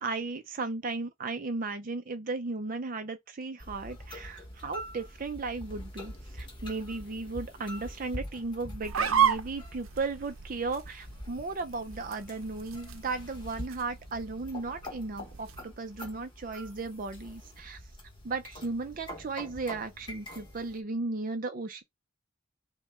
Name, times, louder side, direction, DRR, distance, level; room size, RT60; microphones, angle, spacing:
voice 1, 0.0-17.8 18.2-21.8, right 3 dB, 40° right, 0.5 m, -35 dB
sound 1, 3.6-20.8, equal, 25° left, 1.1 m, -45 dB
sound 2, 8.8-15.7, right 8 dB, 85° right, 0.7 m, -33 dB
5.7 x 2.2 x 3.6 m
head